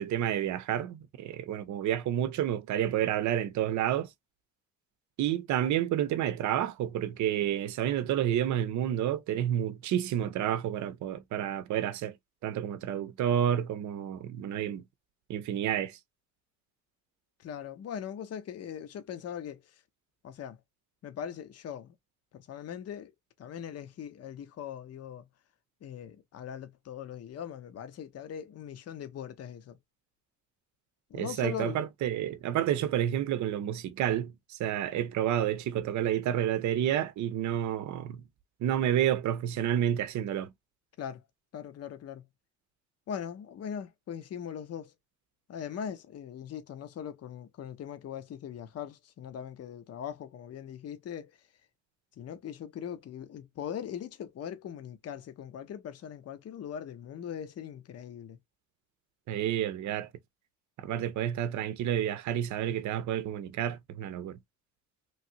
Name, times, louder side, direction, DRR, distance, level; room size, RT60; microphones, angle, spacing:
voice 1, 0.0-4.1 5.2-12.1 12.4-14.8 15.3-16.0 31.1-38.2 38.6-40.5 59.3-60.1 60.8-64.4, right 11 dB, 70° right, 0.6 m, -30 dB
voice 2, 17.4-19.8 20.2-20.6 21.0-21.9 22.3-23.1 23.4-25.3 25.8-29.8 31.1-31.8 41.0-41.2 41.5-42.2 43.1-44.9 45.5-51.4 52.2-58.4, left 8 dB, 55° left, 0.7 m, -40 dB
3.1 x 2.6 x 2.7 m
cardioid pair, 90°, 30 cm